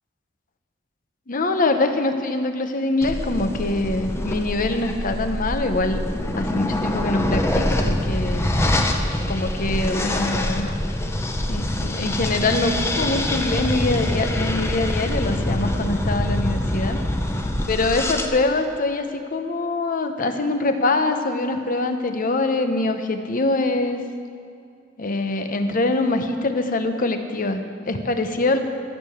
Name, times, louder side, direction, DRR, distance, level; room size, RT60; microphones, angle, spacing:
voice 1, 1.3-6.0 6.4-8.5 9.3-10.8 11.5-17.0 17.7-24.0 25.0-28.6, left 2 dB, 45° left, 7 dB, 0.8 m, -24 dB
sound 1, 3.0-18.3, left 1 dB, 15° left, 0.7 m, -25 dB
13.0 x 6.7 x 7.1 m, 2.4 s
head